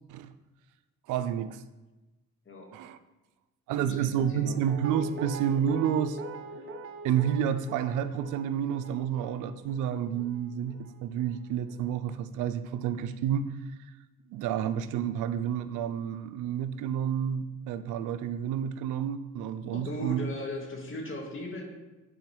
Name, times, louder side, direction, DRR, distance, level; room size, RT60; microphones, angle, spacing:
voice 1, 1.1-1.6 2.7-3.0 3.7-6.2 7.0-13.5 14.3-20.3, right 9 dB, 90° right, 12 dB, 0.5 m, -30 dB
voice 2, 3.7-4.6 19.7-21.7, left 1 dB, 45° left, 0 dB, 1.9 m, -37 dB
Guitar, 4.2-11.2 11.5-11.6, right 2 dB, 45° right, 0.7 m, -42 dB
8.9 x 3.7 x 4.9 m, 1.1 s
cardioid pair, 90°, 30 cm